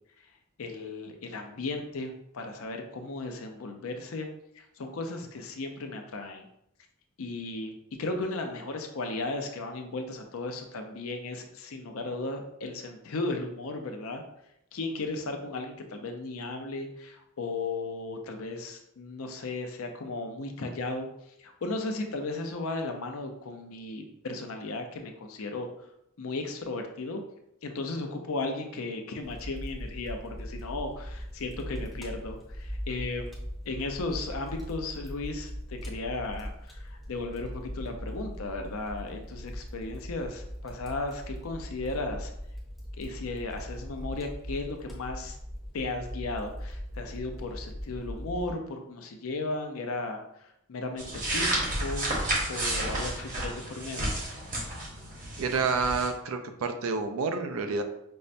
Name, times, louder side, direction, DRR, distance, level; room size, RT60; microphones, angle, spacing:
voice 1, 0.6-4.3 4.5-6.5 7.2-14.2 14.7-21.1 21.4-25.7 26.2-27.2 27.6-33.3 33.7-42.3 43.0-45.4 45.7-54.2, left 2 dB, 70° left, 4 dB, 0.5 m, -35 dB
Fire, 29.2-48.5, equal, ahead, 0.6 m, -40 dB
sound 1, 51.0-56.1, right 1 dB, 35° right, 0.9 m, -31 dB
voice 2, 55.4-57.8, right 4 dB, 70° right, 7 dB, 0.4 m, -29 dB
5.3 x 2.1 x 2.5 m, 0.78 s
head